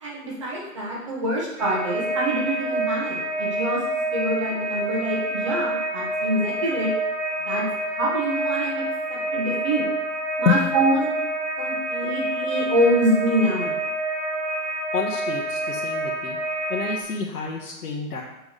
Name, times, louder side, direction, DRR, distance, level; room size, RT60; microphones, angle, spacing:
voice 1, 0.0-3.8 4.1-6.9 7.5-7.6 8.0-8.8 9.3-9.8 10.4-11.1 11.6-13.7, right 1 dB, 20° right, -4 dB, 1.3 m, -25 dB
sound 1, 1.6-17.0, right 1 dB, 15° left, 0.6 m, -27 dB
voice 2, 14.9-16.4 16.7-18.2, left 6 dB, 80° left, -3 dB, 1.6 m, -27 dB
7.0 x 4.8 x 6.7 m, 0.95 s
hypercardioid pair, 175°, 46 cm